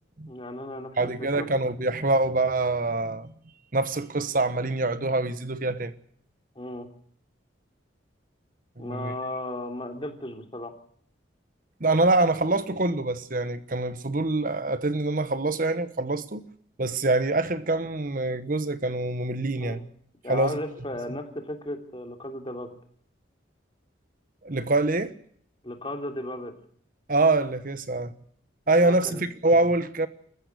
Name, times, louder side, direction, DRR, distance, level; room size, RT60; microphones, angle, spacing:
voice 1, 0.3-1.5 6.5-6.9 8.8-10.7 19.6-19.8 20.2-22.8 25.6-26.5 28.8-29.2, left 1 dB, 25° left, 3.2 m, -35 dB
voice 2, 1.0-3.3 3.7-5.9 8.8-9.1 11.8-16.4 16.8-19.8 20.3-20.6 24.4-25.2 27.1-28.1 28.7-30.1, right 2 dB, 45° right, 1.1 m, -25 dB
26.0 x 15.0 x 8.1 m
head